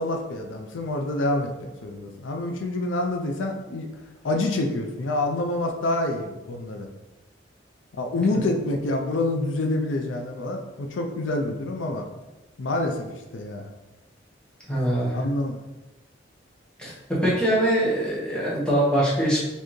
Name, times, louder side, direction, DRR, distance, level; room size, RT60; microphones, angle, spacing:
voice 1, 0.0-1.5 1.8-3.9 4.2-6.9 7.9-12.1 12.6-13.7 15.1-15.6, left 2 dB, 85° left, 3 dB, 0.5 m, -27 dB
voice 2, 14.7-15.2 16.8-16.9 17.2-19.4, right 1 dB, 5° left, -7 dB, 1.3 m, -23 dB
4.5 x 3.4 x 3.1 m, 1.1 s
head